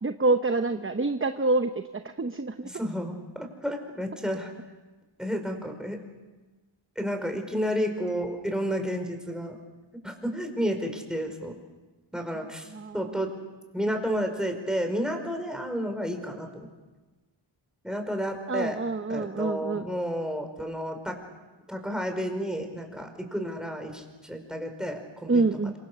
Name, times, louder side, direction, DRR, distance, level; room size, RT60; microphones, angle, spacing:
voice 1, 0.0-1.7 2.2-2.7 12.7-12.9 18.5-19.9 25.3-25.7, right 3 dB, 25° right, 9 dB, 0.9 m, -26 dB
voice 2, 2.6-4.5 5.2-6.0 6.9-9.6 10.0-11.5 12.1-13.3 13.7-16.7 17.8-18.8 19.1-21.1 21.7-25.7, equal, ahead, 4 dB, 5.0 m, -31 dB
27.0 x 24.5 x 6.9 m, 1.2 s
wide cardioid pair, 60°, 48 cm